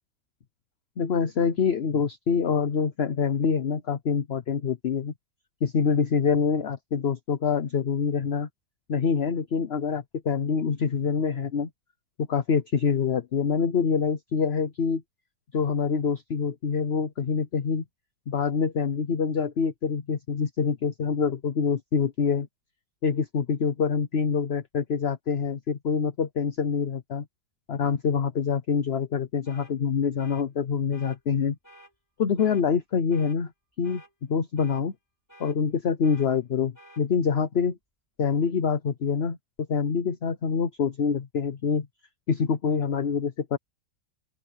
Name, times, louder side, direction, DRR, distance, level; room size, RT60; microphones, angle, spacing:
voice 1, 1.0-5.1 5.6-8.5 8.9-11.7 12.3-15.0 15.5-17.8 18.3-22.5 23.0-27.2 27.7-31.6 32.2-33.5 33.8-34.0 34.3-34.9 35.4-37.8 38.2-39.4 39.7-41.9 42.3-43.6, left 6 dB, 45° left, 0.9 m, -25 dB
sound 1, 29.5-29.7 30.2-30.5 30.9-31.2 31.6-31.9 32.4-32.6 33.1-33.4 33.8-34.1 34.6-34.8 35.3-35.6 36.0-36.3 36.7-37.0, equal, 10° left, 5.7 m, -51 dB
open air
omnidirectional pair, 2.0 m